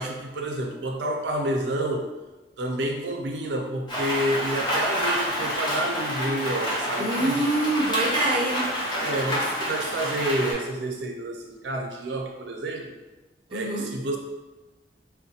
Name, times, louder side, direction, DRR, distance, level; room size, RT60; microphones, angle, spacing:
voice 1, 0.0-2.1 2.6-7.4 9.0-12.9 13.5-14.2, right 1 dB, 75° right, 2 dB, 0.5 m, -29 dB
Rain, 3.9-10.5, equal, 25° left, 0.7 m, -28 dB
voice 2, 7.0-8.7 13.5-13.9, right 2 dB, 30° right, -3 dB, 0.6 m, -25 dB
3.8 x 2.1 x 2.8 m, 1.1 s
head